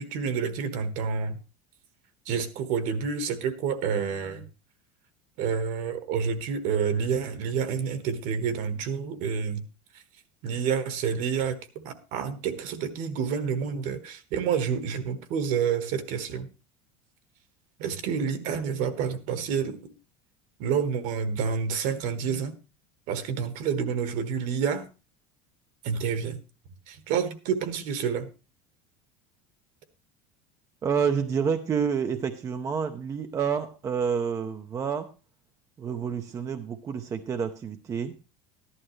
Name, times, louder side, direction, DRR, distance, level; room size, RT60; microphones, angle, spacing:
voice 1, 0.0-1.4 2.3-4.5 5.4-9.6 10.4-16.5 17.8-19.9 20.6-22.5 23.1-24.8 25.8-26.4 26.9-28.3, right 6 dB, 55° right, 11 dB, 1.4 m, -29 dB
voice 2, 30.8-35.1 35.8-38.1, right 6 dB, 20° right, 7 dB, 0.6 m, -28 dB
14.0 x 11.0 x 3.1 m, 0.31 s
cardioid pair, 170°, 16 cm